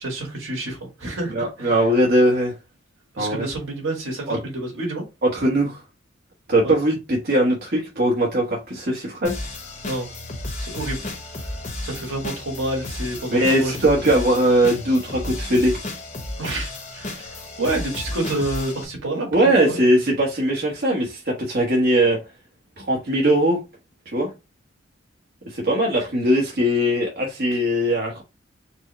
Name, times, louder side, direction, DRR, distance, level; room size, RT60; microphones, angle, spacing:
voice 1, 0.0-1.7 3.1-5.0 6.6-6.7 9.8-10.1 10.6-11.5 11.8-13.8 14.1-14.3 16.4-20.0, right 2 dB, 80° right, 1.8 m, -29 dB
voice 2, 1.3-2.5 3.2-3.5 4.3-4.4 5.2-5.8 6.5-9.5 13.3-15.7 19.3-22.2 22.8-23.6 24.1-24.3 25.5-28.2, right 1 dB, 50° right, 1.1 m, -20 dB
sound 1, 9.2-18.8, left 2 dB, 40° left, 1.0 m, -33 dB
4.5 x 2.1 x 4.0 m
head